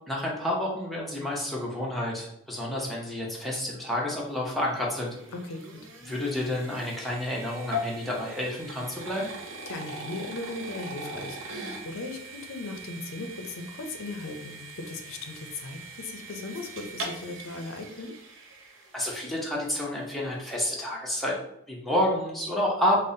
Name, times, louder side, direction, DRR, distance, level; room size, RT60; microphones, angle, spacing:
voice 1, 0.1-5.1 6.1-9.3 18.9-21.3 21.7-23.0, left 1 dB, ahead, -5 dB, 0.6 m, -29 dB
sound 1, 4.2-19.4, equal, 65° right, 0.6 m, -41 dB
voice 2, 5.3-5.8 9.6-18.1, left 3 dB, 75° left, 5 dB, 0.5 m, -38 dB
5.2 x 2.0 x 2.6 m, 0.80 s
head